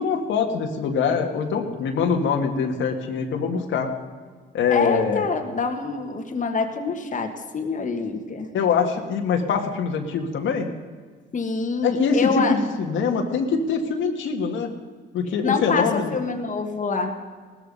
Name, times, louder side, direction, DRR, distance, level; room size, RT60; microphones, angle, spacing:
voice 1, 0.0-3.9 4.5-5.2 8.5-10.7 11.8-14.7 15.1-16.1, left 5 dB, 75° left, 3 dB, 1.9 m, -23 dB
voice 2, 4.7-8.5 11.3-12.6 15.4-17.1, left 4 dB, 40° left, 4 dB, 1.7 m, -26 dB
17.5 x 14.0 x 5.5 m, 1.5 s
cardioid pair, 90°, 20 cm